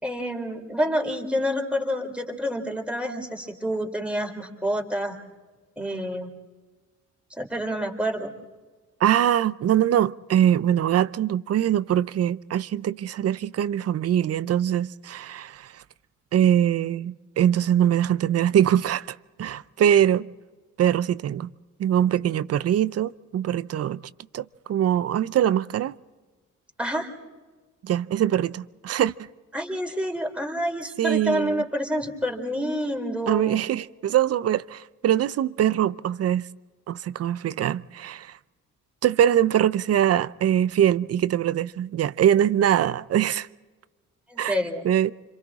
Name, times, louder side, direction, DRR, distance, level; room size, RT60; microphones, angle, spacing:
voice 1, 0.0-5.2 5.8-6.3 7.4-8.3 26.8-27.1 29.5-33.6 44.3-44.9, equal, 5° right, 3.8 m, -28 dB
voice 2, 9.0-15.7 16.3-20.3 20.8-21.5 21.8-24.0 24.3-26.0 27.8-29.1 31.0-31.6 33.3-36.5 36.9-38.3 39.0-43.5 44.4-44.5 44.8-45.1, right 10 dB, 55° right, 0.6 m, -23 dB
30.0 x 26.5 x 3.7 m
cardioid pair, 90°, 30 cm